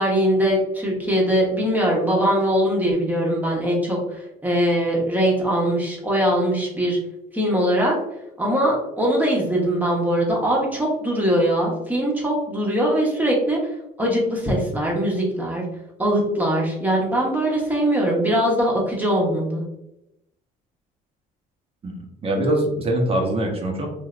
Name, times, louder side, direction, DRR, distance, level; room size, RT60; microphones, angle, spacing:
voice 1, 0.0-7.0 7.3-7.9 8.4-13.6 14.0-15.6 16.0-19.6, equal, 10° right, -3 dB, 1.0 m, -21 dB
voice 2, 22.2-23.9, right 1 dB, 35° right, 1 dB, 0.9 m, -22 dB
3.2 x 2.6 x 2.4 m, 0.87 s
cardioid pair, 110°, 17 cm